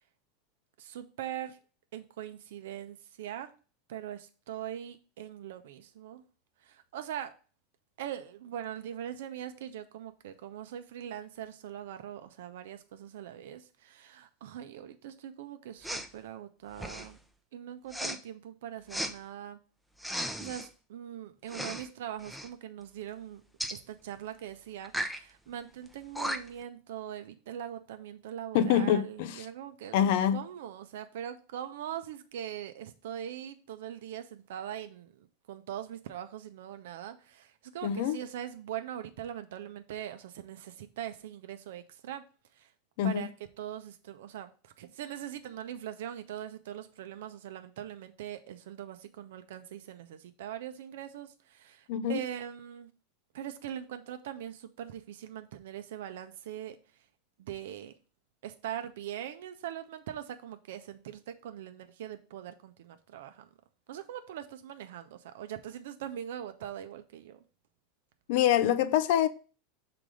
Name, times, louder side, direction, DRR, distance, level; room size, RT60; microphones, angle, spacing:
voice 1, 0.8-1.6 1.9-3.5 3.9-6.2 6.6-7.3 8.0-17.2 17.5-19.6 20.4-23.4 23.7-42.2 42.5-42.7 43.0-43.3 43.6-52.9 53.3-56.8 57.4-57.9 58.4-63.5 63.9-67.4, right 10 dB, 65° right, 0.7 m, -41 dB
Respiratory sounds, 15.8-16.1 16.7-17.2 17.9-18.2 18.9-19.1 20.0-20.7 21.5-21.9 22.2-22.5 23.6-23.8 24.8-25.2 25.9-26.0 26.1-26.6, equal, ahead, 0.7 m, -35 dB
voice 2, 28.5-29.5 29.9-30.4 37.8-38.2 43.0-43.2 51.9-52.2 68.3-69.3, left 10 dB, 60° left, 0.5 m, -25 dB
6.1 x 3.9 x 5.0 m
figure-of-eight pair, 85°, 0 cm